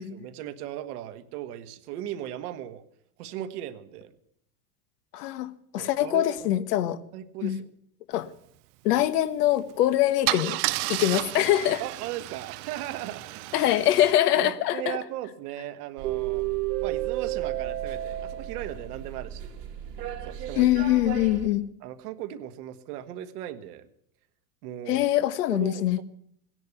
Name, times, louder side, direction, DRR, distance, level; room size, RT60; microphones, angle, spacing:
voice 1, 0.0-2.8 3.2-4.1 5.7-6.5 7.1-7.6 8.9-9.0 11.1-11.2 11.8-13.6 14.3-16.5 16.8-19.5 20.2-20.7 21.8-23.9 24.6-25.1 25.5-26.0, right 12 dB, 70° right, 10 dB, 1.6 m, -37 dB
voice 2, 5.1-7.0 7.4-7.6 8.1-8.3 8.8-10.6 10.9-11.8 13.5-15.0 20.6-21.6 24.9-26.0, left 13 dB, 75° left, 13 dB, 1.3 m, -23 dB
Car / Engine starting / Idling, 9.5-9.7 10.3-14.1, right 21 dB, 55° right, 0.6 m, -32 dB
sound 1, 16.0-21.5, right 13 dB, 90° right, 3.2 m, -32 dB
16.5 x 10.5 x 8.1 m, 0.70 s
supercardioid pair, 110°, 47 cm